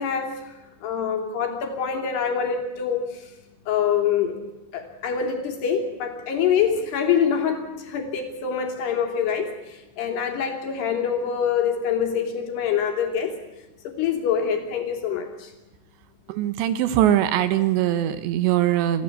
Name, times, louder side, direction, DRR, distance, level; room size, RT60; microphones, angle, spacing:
voice 1, 0.0-3.3 3.7-4.4 4.7-13.4 13.8-15.5, left 7 dB, 65° left, 3 dB, 4.8 m, -25 dB
voice 2, 16.3-19.0, right 12 dB, 80° right, 11 dB, 3.1 m, -21 dB
27.0 x 16.0 x 8.6 m, 1.0 s
omnidirectional pair, 5.1 m